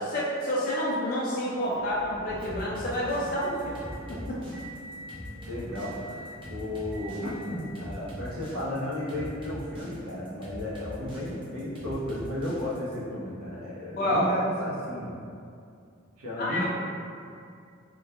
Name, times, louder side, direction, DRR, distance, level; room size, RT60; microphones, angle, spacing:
voice 1, 0.0-3.8 4.1-4.4 14.0-14.3 16.4-16.7, equal, 45° left, -7 dB, 0.3 m, -28 dB
Motor vehicle (road) / Engine, 1.6-7.7, equal, 50° right, 0.8 m, -45 dB
sound 1, 2.4-13.0, equal, 25° right, 0.5 m, -42 dB
voice 2, 5.5-15.1 16.2-16.7, left 1 dB, 85° right, -6 dB, 0.6 m, -34 dB
2.2 x 2.2 x 2.7 m, 2.4 s
head